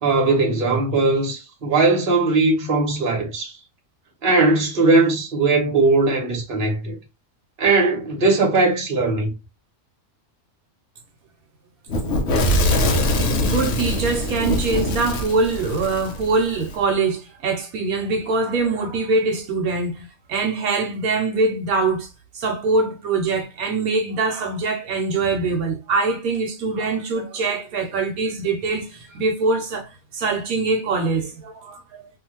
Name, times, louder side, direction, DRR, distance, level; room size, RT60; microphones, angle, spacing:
voice 1, 0.0-3.6 4.2-7.0 7.6-9.3, right 3 dB, 40° right, 1.2 m, -19 dB
Fire / Explosion, 11.9-16.7, left 1 dB, 60° left, 0.9 m, -22 dB
voice 2, 13.1-22.1 22.3-32.1, right 3 dB, 80° right, 1.2 m, -23 dB
2.7 x 2.5 x 3.0 m
omnidirectional pair, 1.5 m